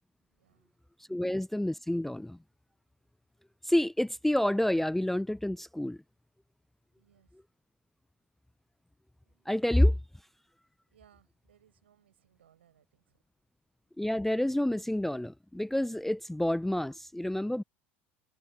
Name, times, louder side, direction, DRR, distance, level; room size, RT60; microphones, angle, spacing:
voice 1, 0.2-0.7 1.1-1.2 6.9-7.4 9.2-9.6 10.9-13.2, right 10 dB, 75° right, 5.8 m, -66 dB
voice 2, 1.1-2.4 3.6-6.0 9.5-10.0 14.0-17.6, left 1 dB, 5° left, 0.3 m, -28 dB
figure-of-eight pair, 70°, 6 cm